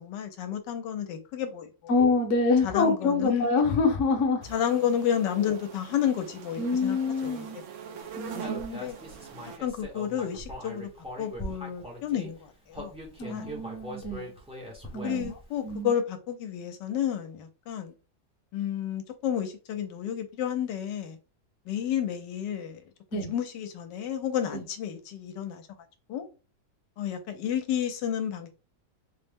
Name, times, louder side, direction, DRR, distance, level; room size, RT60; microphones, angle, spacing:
voice 1, 0.0-1.9 2.6-3.5 4.5-7.5 8.7-9.0 9.6-10.9 11.2-12.9 13.3-13.5 15.0-17.9 18.5-21.2 21.7-22.8 23.1-25.7 26.1-26.3 27.0-28.5, left 9 dB, 80° left, 1.3 m, -31 dB
voice 2, 1.9-4.5 5.4-5.5 6.6-7.6 8.2-8.8 13.2-14.3 14.9-15.3 15.6-15.9 23.1-23.3 24.5-24.6, left 3 dB, 55° left, 1.0 m, -26 dB
sound 1, 4.4-9.6, right 7 dB, 70° right, 0.7 m, -42 dB
Human voice, 8.4-12.3 12.7-15.4, equal, 10° right, 0.4 m, -41 dB
4.1 x 2.0 x 3.4 m
omnidirectional pair, 1.9 m